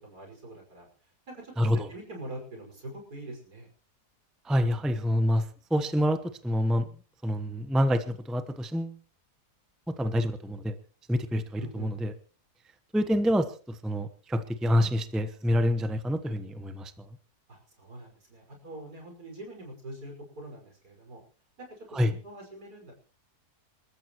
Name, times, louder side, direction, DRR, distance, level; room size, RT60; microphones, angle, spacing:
voice 1, 0.0-3.7 11.6-11.9 17.5-21.2 21.6-22.9, right 1 dB, 75° right, 1 dB, 6.2 m, -44 dB
voice 2, 4.4-5.4 5.7-6.8 7.2-9.0 10.0-10.7 11.1-12.1 12.9-16.9 21.9-22.1, equal, ahead, 9 dB, 0.8 m, -27 dB
28.0 x 13.5 x 3.1 m, 0.40 s
omnidirectional pair, 1.7 m